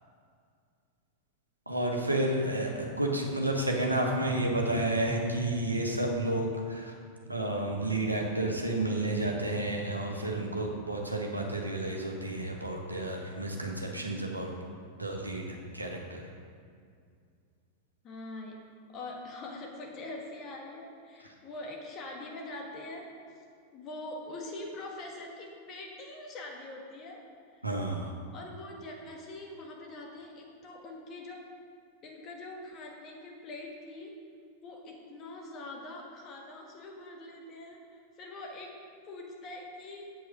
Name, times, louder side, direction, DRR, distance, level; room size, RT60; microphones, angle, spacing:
voice 1, 1.7-6.9 7.3-14.5 15.0-16.3 27.6-28.1, right 1 dB, 85° right, 1 dB, 1.3 m, -31 dB
voice 2, 18.0-23.1 23.7-27.2 27.5-27.6 28.3-31.4 32.0-34.2 34.6-38.8 39.1-40.1, left 2 dB, 35° left, 0 dB, 1.5 m, -43 dB
8.0 x 7.7 x 5.4 m, 2.3 s
figure-of-eight pair, 90°, 0 cm